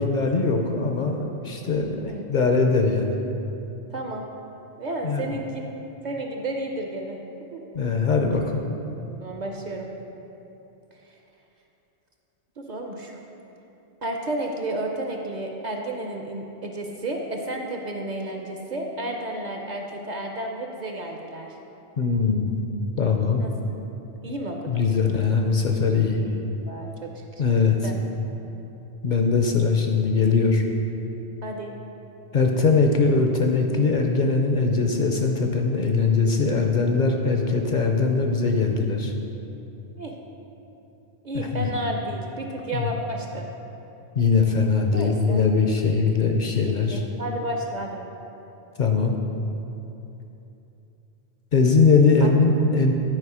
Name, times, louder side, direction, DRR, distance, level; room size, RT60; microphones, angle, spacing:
voice 1, 0.0-3.2 5.0-5.2 7.7-8.6 22.0-22.6 23.0-23.4 24.7-26.2 27.4-27.8 29.0-30.6 32.3-39.1 41.3-41.7 42.7-42.9 44.2-47.0 48.8-49.2 51.5-52.9, left 4 dB, 55° left, 3 dB, 0.6 m, -21 dB
voice 2, 3.9-4.3 4.8-5.7 6.0-7.2 7.5-7.6 9.2-9.9 12.6-13.2 14.0-21.6 23.4-23.5 24.2-24.8 26.2-27.4 27.8-28.0 31.4-31.7 40.0-40.2 41.2-43.5 44.9-45.4 46.6-48.1 52.2-52.3, right 1 dB, 50° right, 2 dB, 0.6 m, -32 dB
9.8 x 4.6 x 4.8 m, 3.0 s
omnidirectional pair, 1.1 m